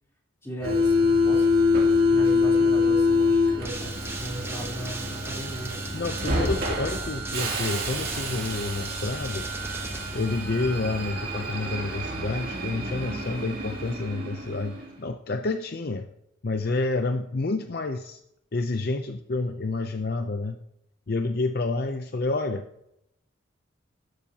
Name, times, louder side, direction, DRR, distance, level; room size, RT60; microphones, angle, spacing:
voice 1, 0.4-1.5 2.1-5.8, right 1 dB, 15° left, -3 dB, 3.4 m, -37 dB
Subway metro underground, 0.6-15.0, left 3 dB, 45° right, 2.8 m, -26 dB
sound 1, 3.6-10.9, right 3 dB, 10° right, 1.0 m, -39 dB
voice 2, 5.9-9.5 10.1-16.1 16.4-18.2 18.5-20.6 21.1-22.6, left 3 dB, 50° left, 7 dB, 0.6 m, -29 dB
12.5 x 12.0 x 2.9 m, 0.81 s
head